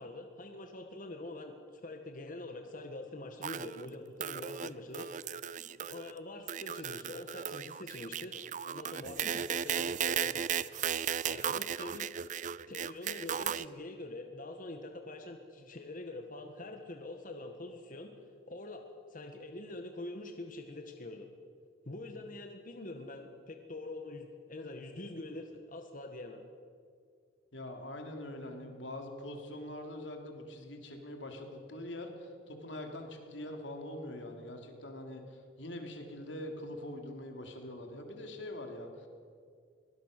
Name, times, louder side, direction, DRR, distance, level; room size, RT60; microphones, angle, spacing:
voice 1, 0.0-5.1 5.6-11.0 11.3-12.1 12.7-18.1 18.5-18.8 19.1-21.3 21.8-26.4, left 2 dB, 50° left, 4 dB, 1.5 m, -45 dB
sound 1, 3.4-3.9 4.2-4.7 4.9-6.1 6.5-13.6, right 8 dB, 45° right, 0.5 m, -36 dB
voice 2, 27.5-39.1, left 1 dB, 90° left, 4 dB, 3.1 m, -43 dB
23.0 x 18.5 x 6.7 m, 2.1 s
head